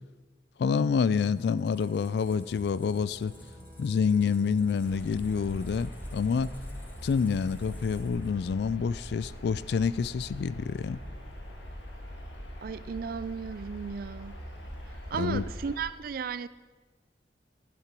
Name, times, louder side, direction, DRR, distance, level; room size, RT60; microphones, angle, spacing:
voice 1, 0.6-3.3 3.8-6.5 7.0-11.0 15.2-15.4, left 6 dB, 65° left, 0.3 m, -27 dB
Squeak, 1.2-8.8, equal, 10° left, 1.1 m, -51 dB
sound 1, 1.3-6.5, left 3 dB, 25° right, 1.4 m, -58 dB
sound 2, 4.8-15.8, equal, 85° left, 1.8 m, -42 dB
voice 2, 12.6-14.4 15.1-16.5, right 6 dB, 55° right, 0.4 m, -35 dB
12.0 x 7.4 x 5.2 m
head